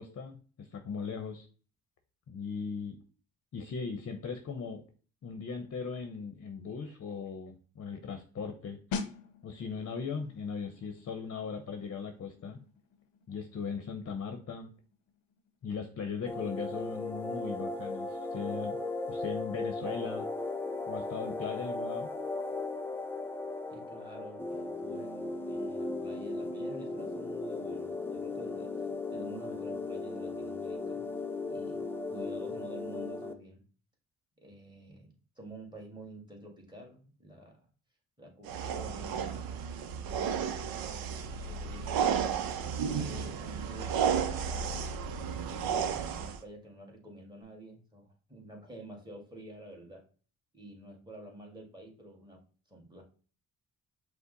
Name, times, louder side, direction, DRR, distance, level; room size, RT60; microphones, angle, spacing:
voice 1, 0.0-1.5 2.3-3.0 3.5-4.8 5.2-9.0 9.4-12.6 13.3-14.7 15.6-18.8 19.1-20.3 20.9-22.1, left 5 dB, 45° left, 6 dB, 0.7 m, -38 dB
sound 1, 8.9-19.4 19.7-19.9, left 4 dB, 85° left, 0.6 m, -46 dB
sound 2, 16.3-33.3, left 3 dB, 5° left, 0.6 m, -37 dB
voice 2, 23.7-31.1 31.5-31.8 32.1-33.7 34.4-37.6 38.2-42.1 42.9-50.0 50.5-52.4 52.7-53.0, right 1 dB, 15° right, 0 dB, 1.8 m, -49 dB
sound 3, 38.4-46.4, right 7 dB, 85° right, 0.6 m, -33 dB
5.5 x 2.1 x 3.9 m, 0.39 s
cardioid pair, 65°, 35 cm